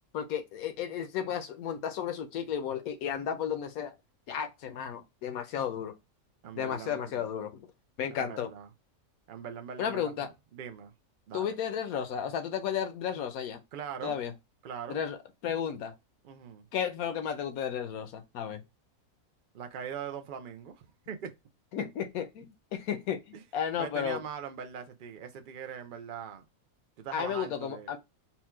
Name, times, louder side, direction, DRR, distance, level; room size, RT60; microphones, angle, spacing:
voice 1, 0.1-3.9 4.3-5.9 6.6-7.7 8.0-8.5 9.8-10.3 11.3-13.6 14.0-14.3 14.9-15.2 15.4-15.9 16.7-18.6 21.7-24.2 27.1-28.0, left 8 dB, 75° left, 1.2 m, -33 dB
voice 2, 6.4-7.3 8.2-8.7 9.3-10.1 10.5-10.9 11.3-11.5 13.7-14.1 14.6-15.0 16.2-16.6 19.5-21.3 23.3-23.4 23.8-26.5 27.0-27.9, right 7 dB, 80° right, 0.4 m, -41 dB
4.3 x 2.3 x 4.3 m
omnidirectional pair, 1.5 m